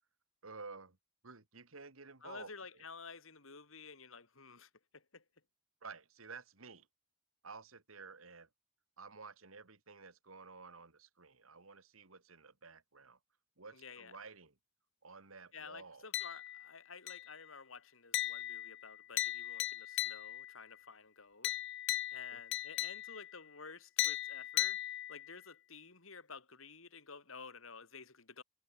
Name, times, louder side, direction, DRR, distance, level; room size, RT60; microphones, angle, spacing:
voice 1, 0.4-1.0 1.2-2.8 5.8-6.9 7.4-8.5 9.0-13.2 13.6-14.5 15.0-16.1 22.3-22.4, right 4 dB, 85° right, 2.3 m, -52 dB
voice 2, 2.2-5.2 13.7-14.1 15.5-21.5 22.1-28.4, left 5 dB, 75° left, 3.1 m, -52 dB
sound 1, 16.1-16.7 17.1-17.5 18.1-20.6 21.4-23.4 24.0-25.4, left 13 dB, 60° left, 0.6 m, -38 dB
head